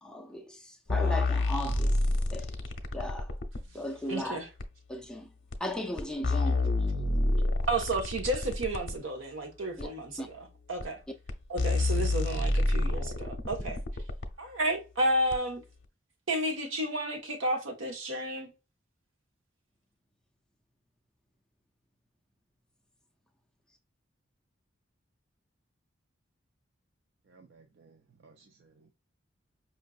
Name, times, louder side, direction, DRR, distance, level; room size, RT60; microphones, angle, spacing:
voice 1, 0.0-2.6 2.9-3.4 3.7-4.4 4.9-5.3 5.6-6.9 9.8-9.9 10.2-10.3, left 1 dB, 5° left, 0.4 m, -37 dB
sound 1, 0.9-3.6 4.6-4.7 5.5-5.6 6.0-9.0 9.8-9.9 10.8-10.9 11.3-11.4 11.6-14.3 15.3-15.4, left 2 dB, 70° left, 0.7 m, -28 dB
voice 2, 4.1-4.5 7.7-11.0 11.5-13.8 14.4-15.6 16.3-18.5, right 1 dB, 90° right, 1.2 m, -32 dB
voice 3, 27.3-28.9, right 4 dB, 55° right, 0.4 m, -59 dB
5.5 x 2.5 x 2.4 m
head